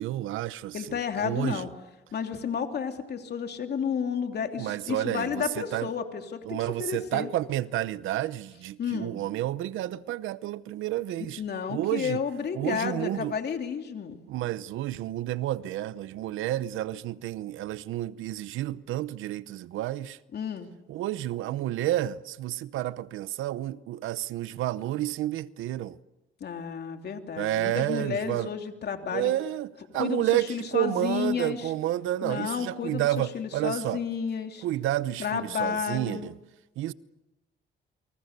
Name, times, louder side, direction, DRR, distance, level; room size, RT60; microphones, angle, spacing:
voice 1, 0.0-1.6 4.6-5.9 6.5-11.4 11.7-12.2 12.5-13.3 14.3-20.2 20.9-26.0 27.4-28.5 29.1-34.0 34.6-36.3 36.8-36.9, right 14 dB, 90° right, 0.8 m, -30 dB
voice 2, 0.7-1.7 2.1-7.3 8.8-9.1 11.4-14.2 20.3-20.7 26.4-29.3 29.9-31.7 32.2-34.6 35.2-36.3, left 7 dB, 55° left, 3.2 m, -32 dB
29.0 x 24.0 x 6.8 m
cardioid pair, 90°, 20 cm